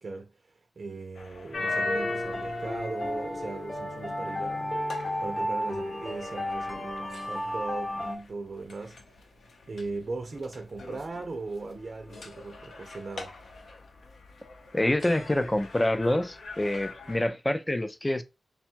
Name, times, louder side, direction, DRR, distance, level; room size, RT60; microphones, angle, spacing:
voice 1, 0.0-9.0 9.7-13.3, right 3 dB, 40° right, 0.6 m, -38 dB
sound 1, 1.1-17.3, left 3 dB, 60° left, 0.7 m, -42 dB
sound 2, 1.5-8.2, left 1 dB, 30° left, 1.0 m, -33 dB
voice 2, 14.7-18.2, left 1 dB, 15° left, 0.4 m, -26 dB
3.4 x 2.3 x 4.4 m
wide cardioid pair, 160°, 0 cm